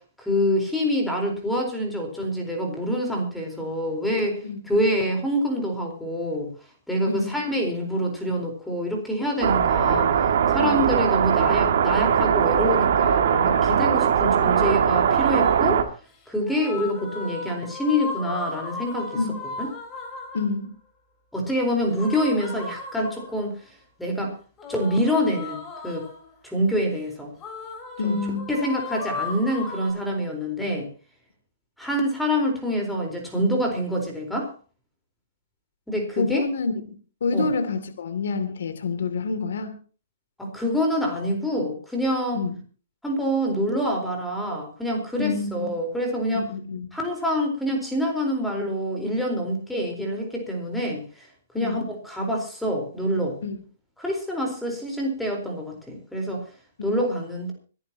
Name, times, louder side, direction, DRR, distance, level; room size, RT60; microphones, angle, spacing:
voice 1, 0.2-6.5 6.9-10.1 10.5-15.9 16.3-19.2 19.6-19.7 21.3-24.3 24.7-26.0 26.4-27.3 28.0-28.2 28.5-30.9 31.8-34.5 35.9-36.4 37.3-37.5 40.4-42.4 43.0-46.5 46.9-51.3 51.5-53.4 54.0-56.4 56.8-57.5, equal, 5° left, 1 dB, 4.3 m, -26 dB
voice 2, 7.1-7.4 10.6-10.8 19.1-19.3 20.3-20.7 28.0-28.5 36.2-39.8 42.3-42.6 45.2-45.7 46.3-46.9 51.5-51.9 53.4-53.6, left 4 dB, 75° left, 9 dB, 2.7 m, -28 dB
sound 1, 9.4-15.8, right 8 dB, 60° right, 2.2 m, -20 dB
sound 2, 15.1-15.7 16.4-20.6 21.9-23.5 24.6-26.3 27.4-29.9, left 3 dB, 20° left, 4.6 m, -36 dB
25.5 x 11.0 x 2.9 m, 0.38 s
hypercardioid pair, 150°, 0 cm